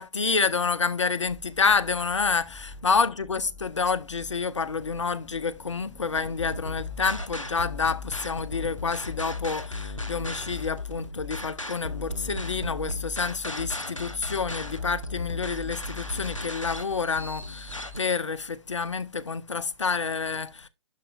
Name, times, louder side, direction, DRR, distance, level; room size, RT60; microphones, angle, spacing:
voice 1, 0.0-20.7, left 5 dB, 70° left, 0.7 m, -28 dB
sound 1, 1.3-8.8, left 2 dB, 10° left, 1.1 m, -50 dB
sound 2, 6.1-18.0, left 2 dB, 85° left, 1.2 m, -35 dB
11.5 x 4.2 x 2.5 m
figure-of-eight pair, 130°, 16 cm